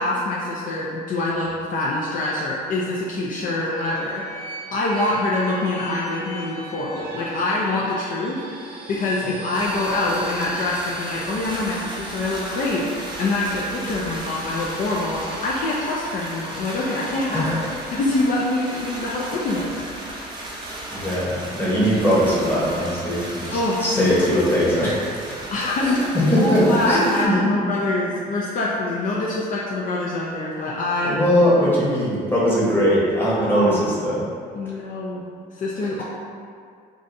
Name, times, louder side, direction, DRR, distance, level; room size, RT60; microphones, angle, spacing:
voice 1, 0.0-4.2 4.7-17.5 17.9-20.2 23.5-24.3 25.5-31.2 33.5-33.8 34.6-35.3 35.6-36.0, left 2 dB, 50° left, -5 dB, 0.4 m, -25 dB
sound 1, 3.5-20.2, right 2 dB, 65° right, 0.5 m, -41 dB
sound 2, 9.5-27.3, right 1 dB, 30° right, 0.7 m, -35 dB
voice 2, 17.3-17.8 20.9-25.1 25.8-27.8 31.0-34.2 34.6-34.8 35.8-36.0, equal, 10° left, -7 dB, 0.9 m, -21 dB
2.5 x 2.3 x 3.9 m, 2.2 s
cardioid pair, 110°, 17 cm